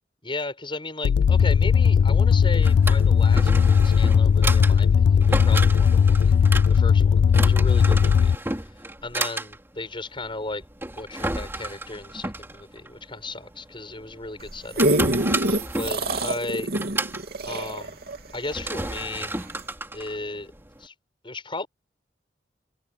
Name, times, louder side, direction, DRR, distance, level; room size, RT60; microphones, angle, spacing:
voice 1, 0.2-6.4 6.7-8.3 9.0-10.6 11.0-14.9 15.7-16.7 17.5-18.0 18.3-19.3 19.9-20.5 20.8-20.9 21.2-21.7, left 2 dB, 30° left, 7.5 m, -35 dB
sound 1, 1.0-8.4, left 6 dB, 70° left, 0.3 m, -18 dB
Drawer open or close, 2.3-20.9, right 2 dB, 15° right, 3.0 m, -33 dB
sound 2, 14.4-19.1 19.6-19.7, right 1 dB, 60° right, 3.2 m, -25 dB
head